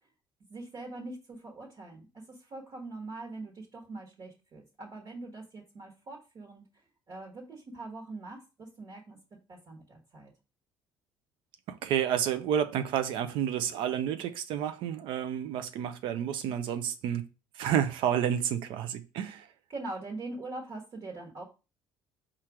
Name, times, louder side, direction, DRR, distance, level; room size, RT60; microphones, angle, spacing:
voice 1, 0.5-6.6 7.1-9.2 9.5-10.3 19.7-21.4, right 2 dB, 45° right, 1.4 m, -42 dB
voice 2, 11.7-17.3 17.6-19.5, right 9 dB, 75° right, 0.5 m, -30 dB
4.3 x 2.5 x 4.7 m
cardioid pair, 95°, 9 cm